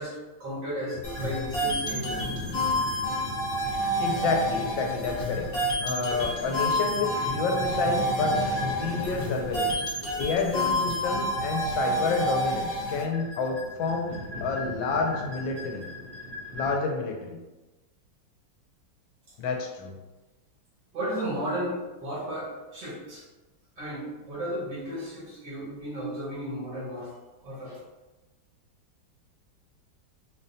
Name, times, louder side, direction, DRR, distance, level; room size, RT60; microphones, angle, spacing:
voice 1, 0.0-2.3 20.9-23.3 23.8-27.1 27.4-27.8, equal, 80° right, -7 dB, 2.4 m, -34 dB
sound 1, 0.9-16.7, left 1 dB, 50° right, 0.8 m, -38 dB
sound 2, 1.0-13.0, equal, 55° left, 1.2 m, -29 dB
voice 2, 4.0-5.5 5.8-9.8 10.2-15.9 16.5-17.4 19.4-19.9, left 4 dB, 90° left, 3 dB, 1.3 m, -29 dB
5.2 x 2.2 x 2.6 m, 1.1 s
omnidirectional pair, 2.0 m